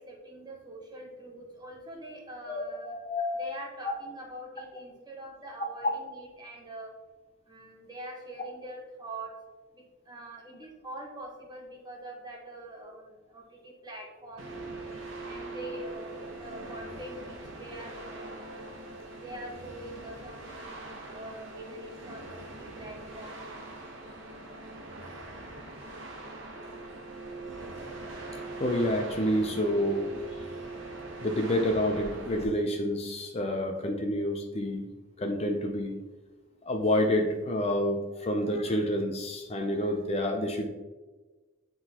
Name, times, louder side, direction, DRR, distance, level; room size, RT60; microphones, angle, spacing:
voice 1, 0.0-3.0 3.4-6.9 7.5-9.3 9.7-14.5 15.2-18.6 19.2-23.4, right 1 dB, 20° right, -1 dB, 1.3 m, -44 dB
voice 2, 2.5-3.5 28.6-30.1 31.2-34.9 35.2-36.0 36.6-40.7, left 1 dB, 30° left, 3 dB, 0.5 m, -28 dB
sound 1, 14.4-32.5, right 2 dB, 75° right, 1.1 m, -42 dB
9.0 x 3.9 x 2.9 m, 1.2 s
head